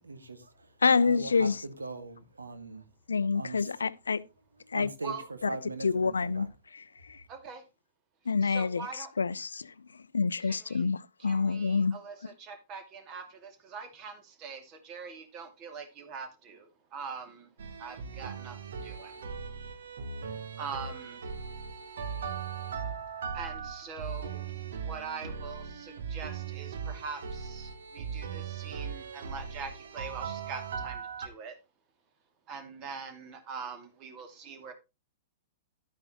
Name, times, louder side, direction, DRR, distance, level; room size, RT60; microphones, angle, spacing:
voice 1, 0.0-2.9 3.3-3.8 4.6-6.5 7.1-7.2, right 2 dB, 80° right, 1.5 m, -41 dB
voice 2, 0.8-1.6 3.1-4.2 4.7-4.9 5.8-6.5 7.0-7.2 8.3-9.7 10.1-12.0 12.2-12.3, left 5 dB, 75° left, 0.5 m, -27 dB
voice 3, 7.3-7.6 8.4-9.1 10.7-10.8 11.3-17.5 17.8-18.6 18.8-19.1 20.6-21.2 23.3-24.4 24.8-31.6 32.5-34.7, right 5 dB, 35° right, 2.3 m, -43 dB
sound 1, 17.6-31.3, right 6 dB, 60° right, 1.3 m, -39 dB
11.5 x 9.2 x 3.0 m
figure-of-eight pair, 105°, 0 cm